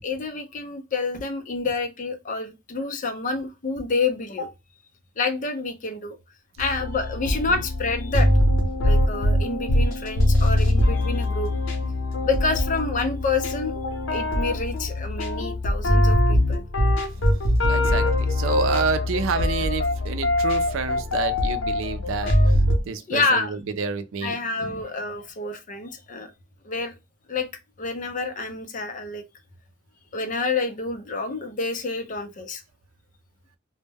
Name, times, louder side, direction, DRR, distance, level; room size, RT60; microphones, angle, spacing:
voice 1, 0.0-4.5 5.2-6.2 6.6-8.3 8.8-11.6 12.2-16.6 23.1-23.5 24.2-26.3 26.6-26.9 27.3-27.5 27.8-29.2 30.1-32.6, left 3 dB, 40° left, 0.5 m, -28 dB
sound 1, 6.6-22.8, left 1 dB, 80° left, 0.7 m, -22 dB
voice 2, 17.6-22.4 22.9-24.3 24.6-24.7, right 5 dB, 85° right, 0.4 m, -28 dB
2.1 x 2.1 x 3.3 m
head